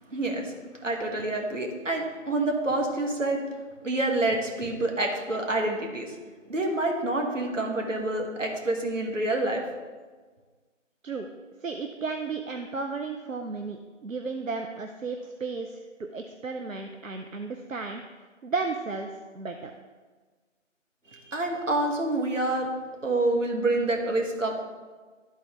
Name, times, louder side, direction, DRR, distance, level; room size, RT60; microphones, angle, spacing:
voice 1, 0.1-0.5 0.8-3.4 3.8-6.1 6.5-9.6 21.1-22.7 23.0-24.6, right 2 dB, 75° right, 1 dB, 1.7 m, -27 dB
voice 2, 11.6-18.0 18.4-19.7, right 4 dB, 90° right, 4 dB, 0.7 m, -34 dB
12.5 x 4.1 x 3.7 m, 1.4 s
figure-of-eight pair, 165°, 38 cm